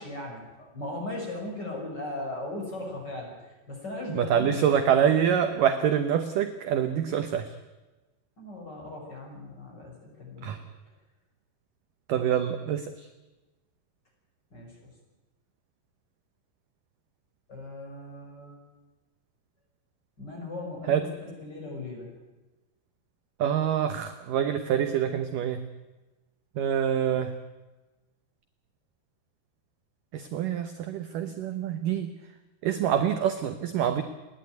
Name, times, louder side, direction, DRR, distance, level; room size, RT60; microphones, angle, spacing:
voice 1, 0.0-5.1 8.4-10.5 14.5-14.7 17.5-18.6 20.2-22.1, left 2 dB, 25° left, 0 dB, 6.2 m, -38 dB
voice 2, 4.1-7.5 10.4-10.6 12.1-13.1 20.9-21.0 23.4-25.6 26.6-27.3 30.1-32.1 32.6-34.0, right 9 dB, 70° right, 8 dB, 2.1 m, -26 dB
29.5 x 11.0 x 9.2 m, 1.1 s
omnidirectional pair, 4.8 m